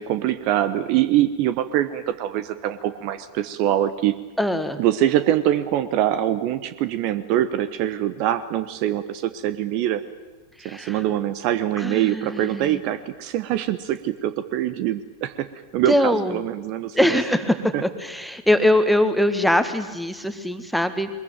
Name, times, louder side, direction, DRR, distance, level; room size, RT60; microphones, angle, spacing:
voice 1, 0.0-4.1 4.8-10.0 10.6-15.5 15.7-17.2 17.7-17.8, right 12 dB, 45° right, 13 dB, 1.1 m, -23 dB
voice 2, 4.4-4.8 10.6-11.0 11.8-12.8 15.9-16.4 16.9-21.1, left 1 dB, ahead, 9 dB, 1.8 m, -22 dB
22.5 x 21.5 x 9.1 m, 1.2 s
figure-of-eight pair, 90°, 0 cm